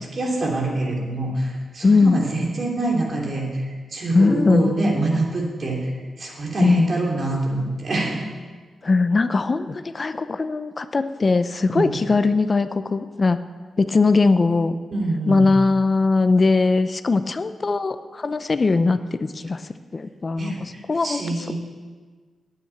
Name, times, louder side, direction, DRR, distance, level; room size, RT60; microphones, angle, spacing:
voice 1, 0.0-5.9 6.2-8.2 11.6-12.0 14.9-15.4 20.4-21.5, right 2 dB, 55° right, -1 dB, 3.3 m, -25 dB
voice 2, 1.8-2.2 4.1-4.7 6.6-6.9 8.8-13.4 13.8-14.8 15.3-21.5, left 3 dB, 40° left, 11 dB, 0.6 m, -20 dB
9.1 x 8.9 x 8.4 m, 1.5 s
cardioid pair, 60°, 0 cm